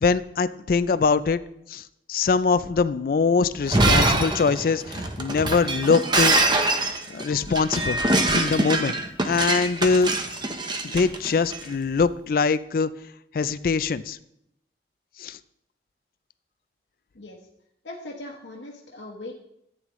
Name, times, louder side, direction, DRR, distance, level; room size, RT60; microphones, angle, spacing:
voice 1, 0.0-1.4 1.7-6.4 7.1-9.0 9.2-10.1 10.8-12.9 13.3-14.2 15.2-15.4, left 4 dB, 50° left, 15 dB, 0.4 m, -23 dB
Shatter, 3.6-11.6, right 2 dB, 25° right, 0.9 m, -23 dB
voice 2, 17.8-19.4, left 2 dB, 85° left, -2 dB, 1.2 m, -39 dB
14.5 x 9.0 x 3.1 m, 0.79 s
head